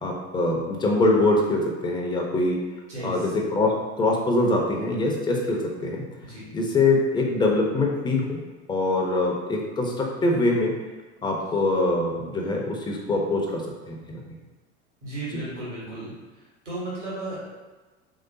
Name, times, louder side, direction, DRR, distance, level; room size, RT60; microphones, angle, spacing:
voice 1, 0.0-2.6 3.0-6.0 6.5-8.4 8.7-10.7 11.2-14.2 15.3-15.4, left 2 dB, 15° left, 0 dB, 0.5 m, -24 dB
voice 2, 2.9-3.3 6.2-6.4 15.0-16.1 16.6-17.5, right 2 dB, 90° right, -8 dB, 1.3 m, -34 dB
3.1 x 2.8 x 2.6 m, 1.2 s
figure-of-eight pair, 75°, 35 cm